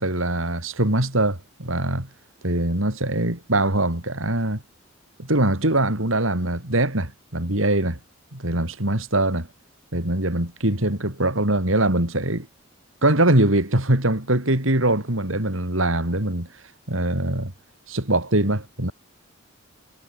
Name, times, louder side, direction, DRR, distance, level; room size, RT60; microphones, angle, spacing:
voice 1, 0.0-2.1 2.4-4.6 5.2-8.0 8.3-9.5 9.9-12.5 13.0-16.5 16.9-17.5 17.9-18.9, right 1 dB, 75° right, 4.6 m, -22 dB
head